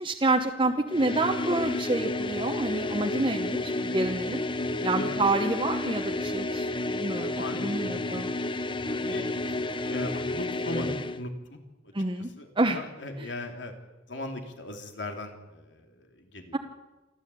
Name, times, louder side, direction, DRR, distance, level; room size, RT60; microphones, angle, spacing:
voice 1, 0.0-4.4 4.8-8.3 11.9-12.3 12.6-12.8 13.2-13.3 16.5-16.6, right 2 dB, 25° right, 3 dB, 1.0 m, -28 dB
sound 1, 0.9-11.2, left 2 dB, 30° left, 0.8 m, -31 dB
voice 2, 7.3-8.0 8.8-11.6 11.8-11.9 12.4-13.7 14.1-16.6, left 1 dB, 85° left, 4 dB, 3.1 m, -38 dB
28.0 x 12.5 x 8.4 m, 1.1 s
head